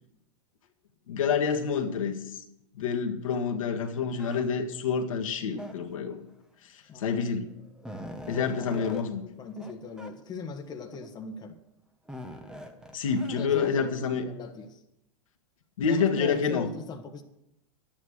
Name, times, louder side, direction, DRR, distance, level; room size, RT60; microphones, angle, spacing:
voice 1, 1.1-2.4 2.7-6.2 7.0-7.6 8.3-9.2 12.9-14.2 15.8-16.7, left 6 dB, 80° left, 2 dB, 1.7 m, -28 dB
sound 1, 4.2-4.4 5.5-6.1 7.0-7.1 7.5-9.0 9.5-9.7 10.0-10.1 10.8-11.3 12.1-13.9, equal, 5° right, 1.4 m, -43 dB
voice 2, 8.3-11.6 13.4-14.8 15.9-17.2, left 5 dB, 25° left, 3 dB, 1.5 m, -40 dB
12.0 x 9.1 x 6.5 m, 0.84 s
hypercardioid pair, 120°, 17 cm